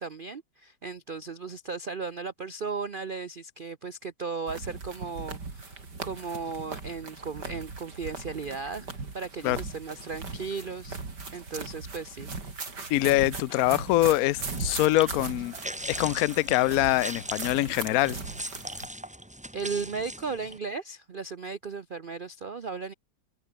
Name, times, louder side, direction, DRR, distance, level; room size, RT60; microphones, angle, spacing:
voice 1, 0.0-8.9 9.1-11.0 11.3-12.3 19.0-19.1 19.5-22.9, right 4 dB, 85° right, 0.4 m, -36 dB
sound 1, 4.5-18.9, right 4 dB, 55° right, 4.4 m, -39 dB
voice 2, 12.9-15.5 15.9-18.2, left 17 dB, 80° left, 0.8 m, -24 dB
sound 2, 14.4-20.6, right 1 dB, 5° right, 0.9 m, -40 dB
open air
omnidirectional pair, 2.1 m